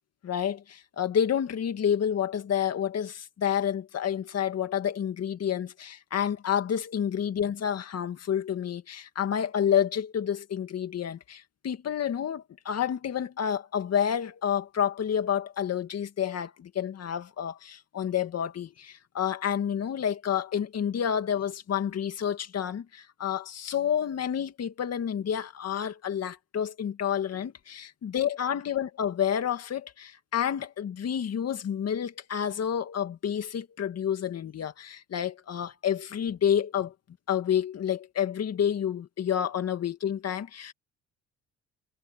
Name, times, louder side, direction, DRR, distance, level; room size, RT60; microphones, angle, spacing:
voice 1, 0.2-36.9 37.3-40.7, left 9 dB, 55° left, 2.1 m, -29 dB
cardioid pair, 90°, 30 cm